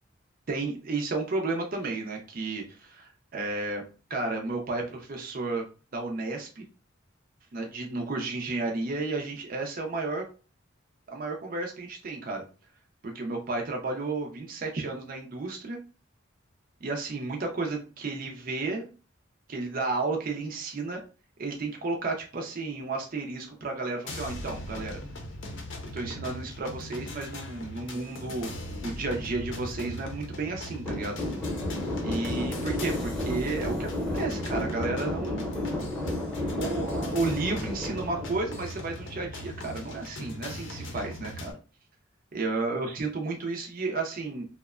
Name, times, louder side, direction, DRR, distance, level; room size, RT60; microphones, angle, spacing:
voice 1, 0.5-3.8 4.1-5.6 5.9-6.6 7.5-10.2 11.1-12.4 13.0-15.8 16.8-18.9 19.5-21.0 21.4-25.0 25.9-28.5 28.8-31.2 32.0-35.4 36.5-41.6 42.3-44.5, right 3 dB, 45° right, 2 dB, 0.5 m, -32 dB
sound 1, 24.1-41.5, left 1 dB, 65° left, 0.6 m, -39 dB
sound 2, 30.9-39.1, left 1 dB, 5° left, 0.7 m, -32 dB
2.8 x 2.1 x 2.3 m, 0.35 s
head